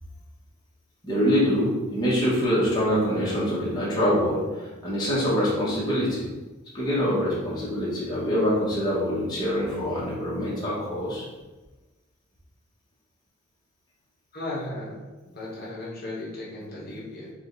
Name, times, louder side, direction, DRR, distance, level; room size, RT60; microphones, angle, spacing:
voice 1, 1.0-6.2 6.7-11.2, equal, 20° left, -8 dB, 1.1 m, -25 dB
voice 2, 14.3-17.3, left 1 dB, 45° left, -6 dB, 1.0 m, -36 dB
4.8 x 2.4 x 3.8 m, 1.2 s
head